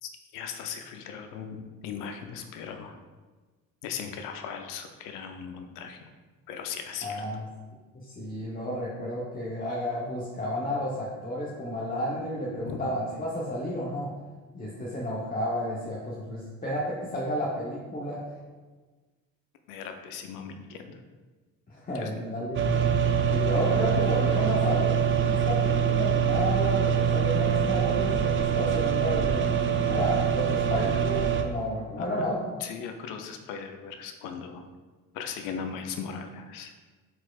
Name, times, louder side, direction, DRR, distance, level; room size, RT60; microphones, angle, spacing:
voice 1, 0.0-3.0 3.8-6.1 6.5-7.2 12.6-12.8 19.7-21.0 21.9-22.1 32.0-32.3 32.6-34.6 35.1-36.7, left 7 dB, 80° left, 6 dB, 0.6 m, -38 dB
voice 2, 7.0-7.4 7.9-14.1 14.5-18.2 21.7-22.6 23.3-32.4, equal, 25° left, -6 dB, 0.9 m, -32 dB
sound 1, 22.5-31.4, right 7 dB, 40° right, 0.5 m, -24 dB
4.4 x 4.2 x 2.4 m, 1.3 s
supercardioid pair, 85°, 32 cm